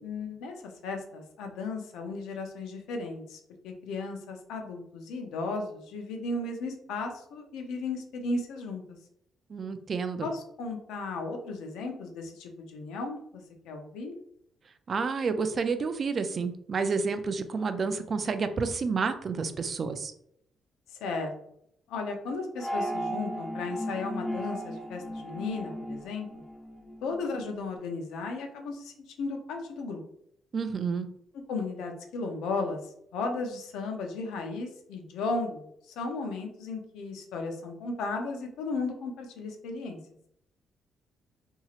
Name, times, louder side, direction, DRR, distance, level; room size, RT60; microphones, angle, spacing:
voice 1, 0.0-8.8 10.2-13.2 13.6-14.2 21.0-21.3 21.9-26.4 27.0-30.0 31.5-32.8 33.1-40.0, left 3 dB, 90° left, 4 dB, 0.5 m, -35 dB
voice 2, 9.5-10.3 14.9-20.1 30.5-31.1, right 5 dB, 45° right, 9 dB, 0.3 m, -30 dB
sound 1, 22.6-27.2, equal, 5° right, 0.8 m, -36 dB
2.9 x 2.7 x 2.4 m, 0.72 s
cardioid pair, 90°, 0 cm